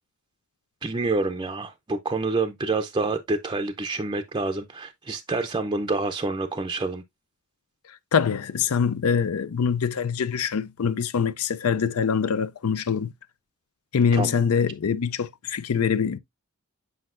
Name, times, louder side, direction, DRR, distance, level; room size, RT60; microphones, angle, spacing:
voice 1, 0.8-7.0 14.1-14.3, right 3 dB, 20° right, 0.5 m, -27 dB
voice 2, 7.9-13.1 13.9-16.2, left 6 dB, 80° left, 0.5 m, -24 dB
7.9 x 4.9 x 2.5 m
head